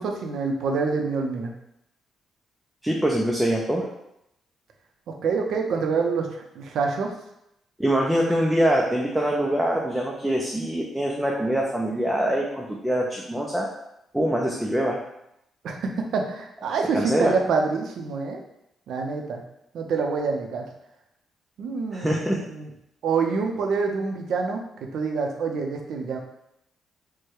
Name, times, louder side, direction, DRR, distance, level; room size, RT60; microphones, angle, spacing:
voice 1, 0.0-1.5 5.2-7.1 15.6-18.4 18.9-19.4 19.7-20.7 21.6-22.2 22.5-22.7 23.0-24.6 24.9-26.2, right 4 dB, 65° right, 2 dB, 0.6 m, -26 dB
voice 2, 2.8-3.8 7.8-13.7 14.1-15.0 16.9-17.3 21.9-22.4, right 1 dB, 5° right, -2 dB, 0.4 m, -24 dB
4.7 x 2.2 x 4.6 m, 0.81 s
cardioid pair, 175°, 0 cm